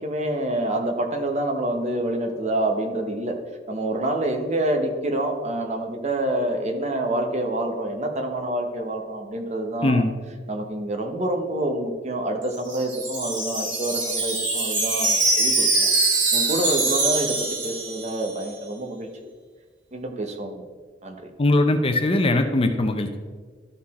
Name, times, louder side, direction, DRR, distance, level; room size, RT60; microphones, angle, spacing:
voice 1, 0.0-3.3 3.7-10.0 10.5-17.4 17.6-19.3 19.9-20.6 21.0-21.3, right 1 dB, 40° right, 4 dB, 0.9 m, -27 dB
Wind chime, 12.4-18.4, right 3 dB, 80° right, 1.8 m, -23 dB
voice 2, 21.4-23.2, left 2 dB, 30° left, 6 dB, 0.6 m, -20 dB
12.5 x 4.2 x 4.2 m, 1.5 s
head